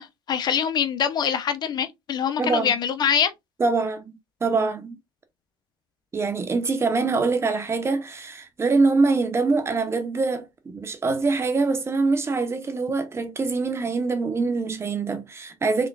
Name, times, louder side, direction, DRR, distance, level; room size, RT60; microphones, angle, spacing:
voice 1, 0.0-3.3, left 8 dB, 45° left, 0.7 m, -24 dB
voice 2, 2.4-2.7 3.6-5.0 6.1-15.9, right 3 dB, 25° right, 1.0 m, -24 dB
3.6 x 3.6 x 2.4 m
supercardioid pair, 90°, 10 cm